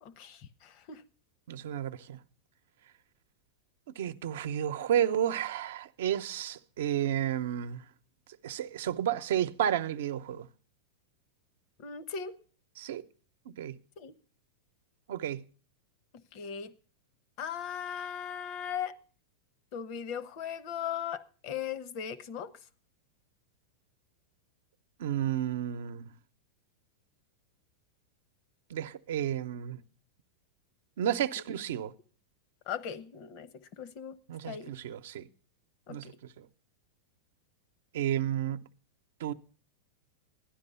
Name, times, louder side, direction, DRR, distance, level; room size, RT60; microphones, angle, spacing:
voice 1, 0.0-1.0 11.8-12.4 14.0-14.1 16.3-16.7 17.4-19.0 19.7-22.5 32.7-33.5 33.8-34.2 34.4-34.7 35.9-36.2, left 8 dB, 50° left, 0.9 m, -38 dB
voice 2, 1.5-2.2 3.9-7.8 8.4-10.5 12.8-13.0 13.5-13.8 15.1-15.4 25.0-26.1 28.7-29.8 31.0-31.9 34.3-35.3 35.9-36.5 37.9-38.7 39.2-39.3, right 10 dB, 75° right, 0.7 m, -32 dB
13.0 x 9.9 x 5.5 m
hypercardioid pair, 120°, 0 cm